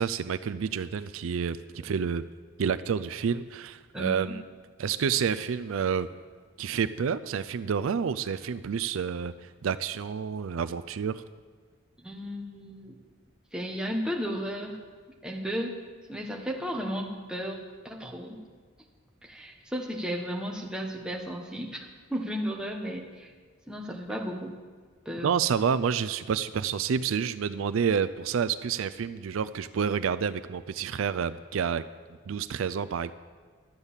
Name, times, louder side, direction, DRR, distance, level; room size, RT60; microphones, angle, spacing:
voice 1, 0.0-2.2 2.6-4.4 4.8-6.1 6.6-11.2 25.2-31.8 32.3-33.1, right 7 dB, 75° right, 14 dB, 0.4 m, -29 dB
voice 2, 3.9-4.4 12.0-13.0 13.5-14.8 15.2-15.8 16.1-18.4 19.2-23.3 23.7-24.6 25.0-25.4, equal, 5° right, 0 dB, 1.2 m, -34 dB
12.0 x 8.1 x 7.1 m, 1.5 s
head